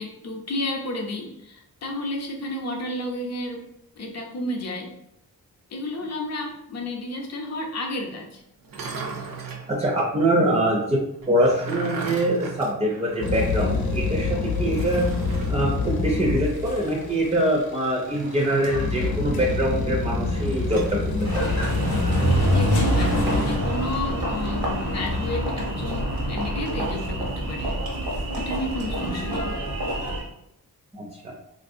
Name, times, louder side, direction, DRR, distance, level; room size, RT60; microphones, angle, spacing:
voice 1, 0.0-3.7 4.0-4.9 5.7-8.4 22.3-27.8 28.4-29.6, left 1 dB, 45° left, 2 dB, 0.6 m, -31 dB
sound 1, 8.6-9.7 11.2-13.5 13.8-13.9 14.7-15.6 18.0-19.0 20.4-21.0, right 5 dB, 70° right, 0.5 m, -36 dB
voice 2, 9.7-15.1 15.5-21.4 30.9-31.3, right 1 dB, 20° right, -2 dB, 0.4 m, -24 dB
sound 2, 13.2-23.6, left 3 dB, 85° left, 0.7 m, -26 dB
Engine, 21.2-30.2, equal, 85° right, 0.9 m, -26 dB
3.6 x 2.6 x 2.5 m, 0.82 s
wide cardioid pair, 180°, 36 cm